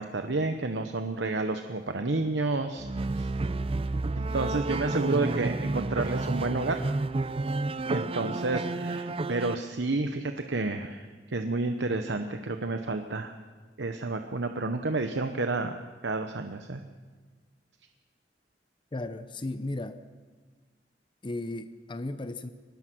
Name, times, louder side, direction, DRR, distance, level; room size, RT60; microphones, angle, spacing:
voice 1, 0.0-3.3 4.1-6.8 7.9-13.3 13.8-16.8, right 3 dB, 80° right, 6 dB, 1.0 m, -30 dB
sound 1, 2.8-9.5, right 2 dB, 30° right, 0.5 m, -30 dB
voice 2, 18.9-20.0 21.2-22.5, left 2 dB, 25° left, 11 dB, 0.7 m, -35 dB
23.5 x 19.0 x 6.1 m, 1.4 s
head